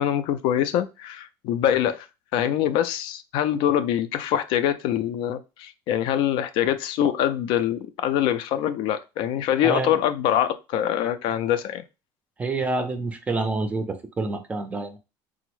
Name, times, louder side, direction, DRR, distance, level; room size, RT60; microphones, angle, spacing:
voice 1, 0.0-2.1 2.3-11.8, left 10 dB, 65° left, 0.3 m, -24 dB
voice 2, 9.6-10.0 12.4-15.0, right 3 dB, 15° right, 0.4 m, -27 dB
3.6 x 2.0 x 3.0 m
cardioid pair, 145°, 9 cm